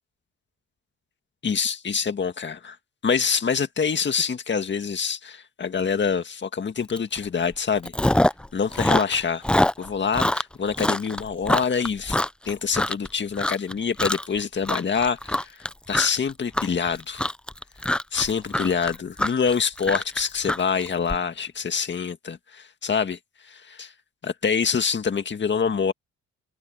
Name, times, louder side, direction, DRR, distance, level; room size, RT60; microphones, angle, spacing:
voice 1, 1.4-2.8 3.0-7.9 8.5-9.4 9.8-12.2 12.5-15.5 15.9-17.2 18.1-23.2 23.5-23.9 24.2-25.9, left 6 dB, 35° left, 1.9 m, -26 dB
Chewing mastication, 7.0-7.2 7.5-8.5 8.7-13.1 13.4-13.7 14.0-14.4 14.6-21.2, left 1 dB, 5° left, 0.3 m, -24 dB
cardioid pair, 90°, 30 cm